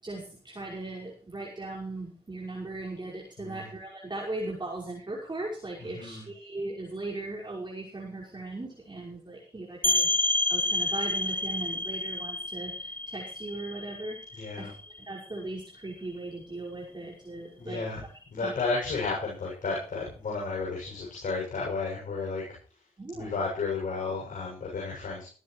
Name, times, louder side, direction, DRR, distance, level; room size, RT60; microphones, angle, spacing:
voice 1, 0.0-18.1 18.4-18.5 23.0-23.3, right 2 dB, 30° right, -4 dB, 5.6 m, -38 dB
sound 1, 9.8-15.3, left 2 dB, 10° left, 2.3 m, -29 dB
voice 2, 14.3-14.7 17.6-18.0 18.3-22.4 23.1-25.3, left 4 dB, 60° left, -3 dB, 7.4 m, -32 dB
20.0 x 14.0 x 3.3 m, 0.39 s
supercardioid pair, 45°, 15 cm